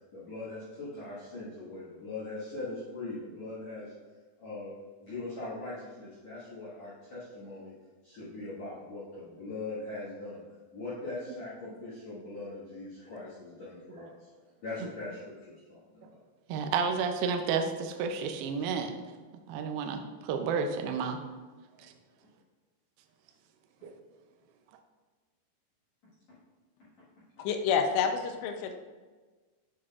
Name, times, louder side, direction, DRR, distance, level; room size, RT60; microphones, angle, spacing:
voice 1, 0.1-3.9 4.4-4.7 5.0-7.7 8.0-10.4 10.7-14.3 14.6-16.2, left 2 dB, 55° left, -8 dB, 2.2 m, -41 dB
voice 2, 16.5-18.9 19.5-21.2 21.8-21.9 23.8-23.9, right 5 dB, 80° right, 6 dB, 2.2 m, -31 dB
voice 3, 27.4-28.7, left 6 dB, 90° left, 5 dB, 2.9 m, -28 dB
7.8 x 7.7 x 2.4 m, 1.4 s
omnidirectional pair, 4.9 m